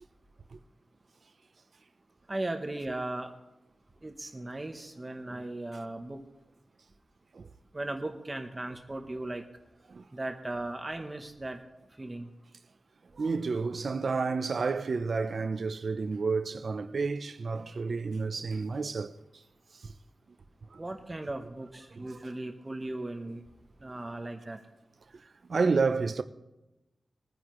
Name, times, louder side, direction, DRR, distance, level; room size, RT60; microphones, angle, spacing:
voice 1, 2.3-3.3 4.0-6.2 7.7-9.4 10.1-11.6 12.0-12.3 20.8-23.4 23.8-24.6, right 2 dB, 20° right, 0.8 m, -37 dB
voice 2, 13.2-19.1 20.7-20.8 22.0-22.2 25.5-26.2, right 4 dB, 50° right, 0.6 m, -30 dB
21.5 x 9.7 x 3.1 m
wide cardioid pair, 170°, 0 cm